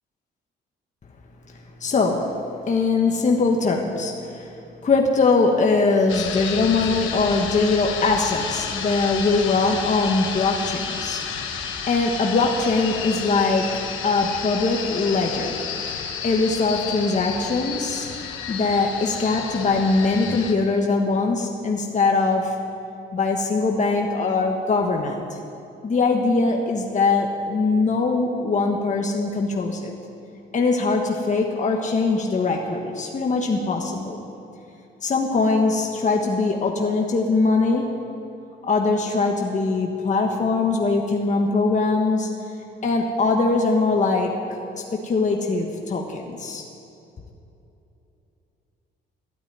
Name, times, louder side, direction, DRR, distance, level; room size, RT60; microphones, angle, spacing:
voice 1, 1.8-2.3 2.7-4.5 4.8-11.3 11.5-13.7 14.0-15.6 16.2-18.1 18.5-22.5 23.1-25.2 25.8-29.9 30.5-34.2 35.0-37.9 38.6-42.3 42.8-44.3 44.8-46.6, left 3 dB, 40° left, 1 dB, 1.4 m, -22 dB
sound 1, 6.1-20.5, left 7 dB, 85° left, 1.3 m, -31 dB
13.0 x 9.0 x 9.3 m, 2.8 s
cardioid pair, 90°, 20 cm